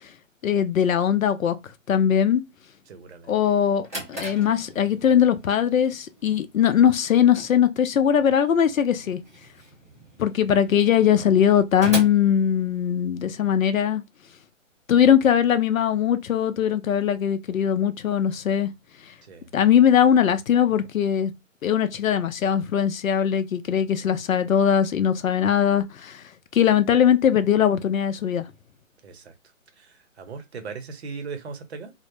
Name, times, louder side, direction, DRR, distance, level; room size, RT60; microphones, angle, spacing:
voice 1, 0.4-1.6 1.9-2.4 3.3-9.2 10.2-14.0 14.9-18.7 19.5-21.3 21.6-26.2 26.5-28.4, left 9 dB, 85° left, 0.5 m, -20 dB
voice 2, 2.9-3.3 19.3-19.5 29.0-29.3 29.8-29.9 30.2-31.9, right 5 dB, 55° right, 0.7 m, -38 dB
Drawer open or close, 3.8-13.2, right 2 dB, 15° right, 0.4 m, -39 dB
2.0 x 2.0 x 3.0 m
figure-of-eight pair, 145°, 40 cm